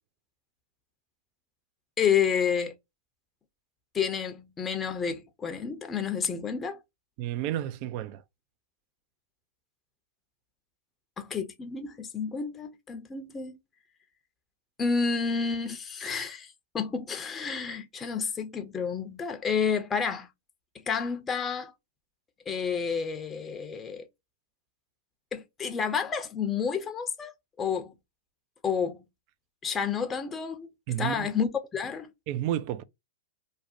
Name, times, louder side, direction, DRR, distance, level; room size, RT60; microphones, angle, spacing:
voice 1, 2.0-2.7 3.9-6.8 11.2-13.6 14.8-20.3 20.9-21.7 22.5-24.1 25.3-27.3 27.6-27.9 28.6-29.0 29.6-30.7 31.0-32.1, left 6 dB, 20° left, 0.5 m, -30 dB
voice 2, 7.2-8.2 30.9-31.3 32.3-32.8, right 12 dB, 45° right, 0.3 m, -31 dB
2.5 x 2.1 x 2.4 m
hypercardioid pair, 105°, 0 cm